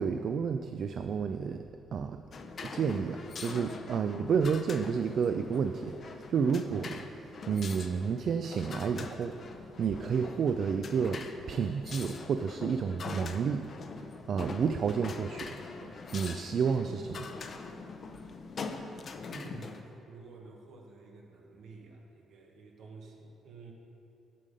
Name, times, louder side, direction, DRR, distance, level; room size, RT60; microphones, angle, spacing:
voice 1, 0.0-2.2 2.6-17.3, right 6 dB, 60° right, 8 dB, 0.3 m, -31 dB
sound 1, 2.3-19.8, left 4 dB, 50° left, 0.6 m, -43 dB
voice 2, 19.3-23.7, right 3 dB, 75° right, 1 dB, 1.3 m, -50 dB
7.5 x 7.5 x 5.2 m, 2.8 s
cardioid pair, 90°, 0 cm